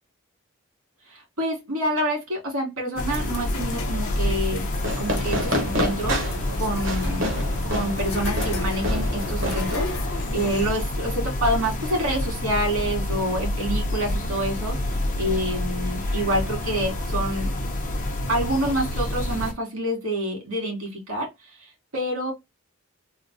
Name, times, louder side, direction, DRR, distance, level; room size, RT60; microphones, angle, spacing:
voice 1, 1.1-4.7 5.0-6.2 6.6-7.3 7.7-17.5 18.3-22.3, right 1 dB, 80° right, 2.1 m, -27 dB
sound 1, 3.0-19.5, left 1 dB, 35° left, 0.7 m, -28 dB
sound 2, 3.1-10.7, left 3 dB, 90° left, 0.9 m, -36 dB
Fireworks, 4.8-10.3, equal, 60° right, 1.0 m, -29 dB
3.7 x 2.3 x 2.6 m
head